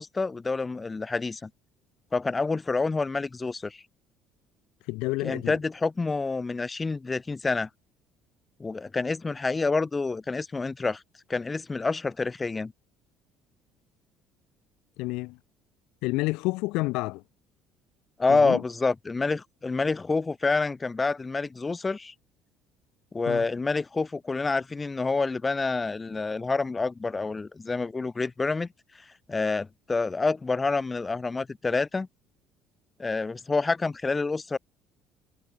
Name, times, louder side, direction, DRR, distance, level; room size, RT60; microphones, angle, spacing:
voice 1, 0.0-1.5 2.1-3.8 5.2-7.7 8.6-11.0 11.3-12.7 18.2-22.1 23.1-28.7 29.3-32.1 33.0-34.6, left 3 dB, 25° left, 1.7 m, -28 dB
voice 2, 4.9-5.6 15.0-15.4 16.0-17.2 18.3-18.6 23.3-23.5, left 23 dB, 75° left, 1.0 m, -29 dB
supercardioid pair, 75°, 0 cm